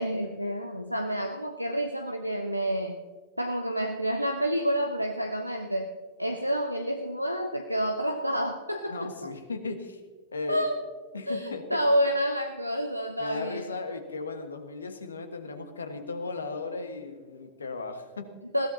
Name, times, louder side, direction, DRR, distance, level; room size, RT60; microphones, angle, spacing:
voice 1, 0.0-3.0 3.4-5.9 6.2-9.3 10.5-10.8 11.3-13.7 18.5-18.7, equal, 90° left, 5 dB, 0.7 m, -29 dB
voice 2, 8.9-10.0 10.3-10.7 11.1-11.8 13.2-18.4, left 3 dB, 75° left, 7 dB, 1.5 m, -36 dB
20.5 x 16.0 x 2.8 m, 1.4 s
figure-of-eight pair, 90°, 0 cm